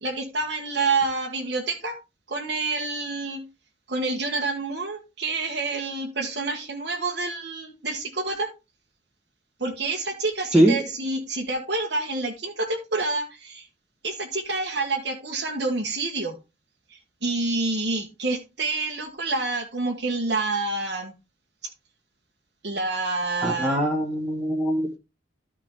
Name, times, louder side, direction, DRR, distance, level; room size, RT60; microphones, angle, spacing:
voice 1, 0.0-2.0 2.3-3.4 3.9-8.5 9.6-13.7 14.0-16.4 17.2-21.1 22.6-23.8, right 3 dB, 60° right, 0 dB, 1.5 m, -28 dB
voice 2, 23.4-25.0, right 1 dB, 5° right, -3 dB, 2.0 m, -21 dB
13.0 x 5.0 x 3.7 m, 0.26 s
head